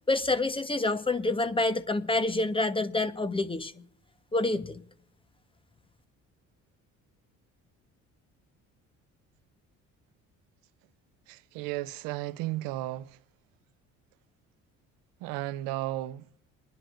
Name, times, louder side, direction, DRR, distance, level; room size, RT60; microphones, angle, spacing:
voice 1, 0.1-3.7 4.3-4.8, left 2 dB, 15° left, 1.1 m, -27 dB
voice 2, 11.3-13.2 15.2-16.3, right 16 dB, 90° right, 0.6 m, -34 dB
28.0 x 10.5 x 2.5 m
supercardioid pair, 80°, 33 cm